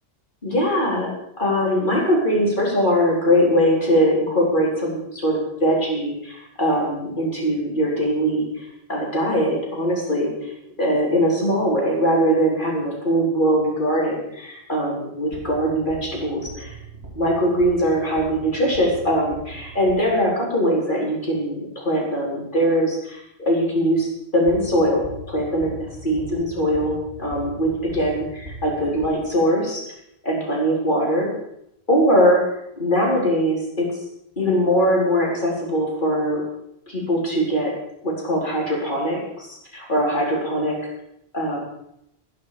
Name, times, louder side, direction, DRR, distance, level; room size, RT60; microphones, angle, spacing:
voice 1, 0.4-1.1 1.4-8.5 8.9-10.5 10.8-16.7 17.2-24.1 24.3-25.0 25.3-29.8 30.2-31.3 31.9-32.4 32.8-33.9 34.4-36.4 36.9-37.7 38.0-40.8 41.3-41.6, equal, 50° left, -3 dB, 4.8 m, -21 dB
sound 1, 15.3-20.4 24.5-29.7, right 2 dB, 75° right, 2.8 m, -40 dB
15.0 x 10.5 x 7.1 m, 0.79 s
omnidirectional pair, 1.1 m